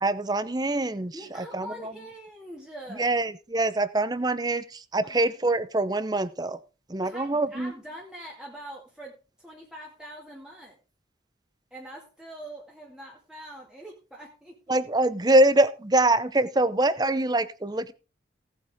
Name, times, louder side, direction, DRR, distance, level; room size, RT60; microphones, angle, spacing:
voice 1, 0.0-1.9 2.9-6.6 6.9-7.7 14.7-17.9, right 2 dB, 20° right, 0.7 m, -24 dB
voice 2, 1.1-3.1 5.0-5.2 7.0-10.8 11.7-14.8, right 1 dB, 5° right, 2.1 m, -44 dB
17.5 x 8.0 x 3.6 m
head